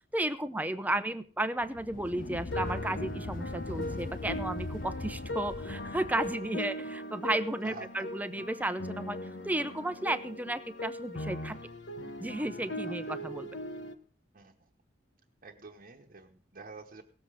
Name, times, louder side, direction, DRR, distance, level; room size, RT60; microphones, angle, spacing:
voice 1, 0.1-9.2 9.4-11.6 12.2-13.6, right 1 dB, 10° right, 10 dB, 0.7 m, -33 dB
sound 1, 1.6-6.5, left 3 dB, 50° left, 0.6 m, -41 dB
Rainy Day me., 2.2-13.9, left 1 dB, 70° left, 1.2 m, -39 dB
voice 2, 15.4-17.0, right 3 dB, 50° right, 0 dB, 1.2 m, -47 dB
18.0 x 7.7 x 4.9 m, 0.41 s
head